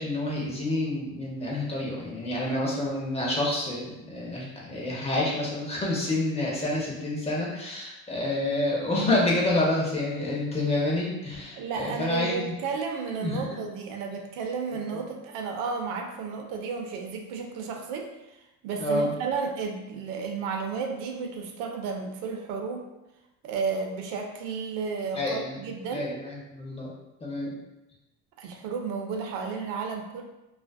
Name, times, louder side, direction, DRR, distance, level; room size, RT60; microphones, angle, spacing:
voice 1, 0.0-12.5 13.2-13.6 18.8-19.1 25.1-25.6 25.9-26.9 27.2-27.6, left 1 dB, 20° left, -4 dB, 0.6 m, -28 dB
voice 2, 11.5-18.4 18.6-22.9 23.4-26.1 28.4-30.2, right 5 dB, 70° right, 3 dB, 0.5 m, -32 dB
2.4 x 2.4 x 2.2 m, 0.96 s
cardioid pair, 120°, 34 cm